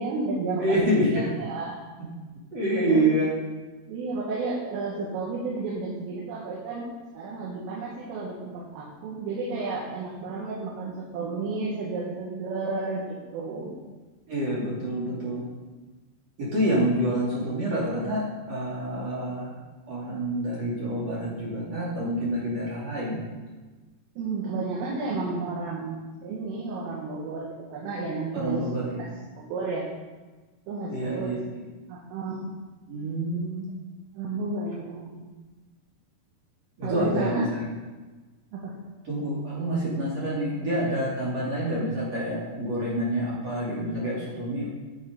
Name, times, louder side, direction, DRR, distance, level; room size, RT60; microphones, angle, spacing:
voice 1, 0.0-1.8 2.8-3.0 3.9-6.9 7.2-13.8 24.2-28.6 29.0-29.1 29.4-29.9 30.7-31.4 31.9-32.4 34.1-35.2 36.8-37.4 38.5-38.8, right 3 dB, 85° right, -4 dB, 4.0 m, -32 dB
voice 2, 0.6-1.3 2.5-3.3 14.3-15.5 16.4-19.5 19.9-23.2 28.3-29.1 30.9-31.6 32.9-33.7 36.8-37.6 39.0-44.7, right 1 dB, 40° right, -7 dB, 2.9 m, -27 dB
8.8 x 8.2 x 5.1 m, 1.3 s
omnidirectional pair, 5.7 m